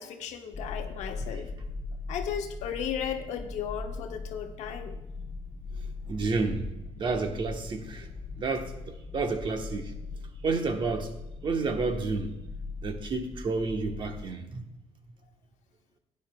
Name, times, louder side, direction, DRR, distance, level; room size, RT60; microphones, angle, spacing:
voice 1, 0.0-1.5 2.1-5.0, left 8 dB, 75° left, 5 dB, 1.1 m, -35 dB
sound 1, 0.5-14.2, left 3 dB, 30° left, 0.7 m, -40 dB
voice 2, 6.1-6.7 7.0-8.1 8.4-9.9 10.4-11.1 11.4-12.3 12.8-14.6, right 4 dB, 40° right, 5 dB, 1.1 m, -30 dB
16.0 x 9.7 x 2.3 m, 0.93 s
cardioid pair, 115°, 12 cm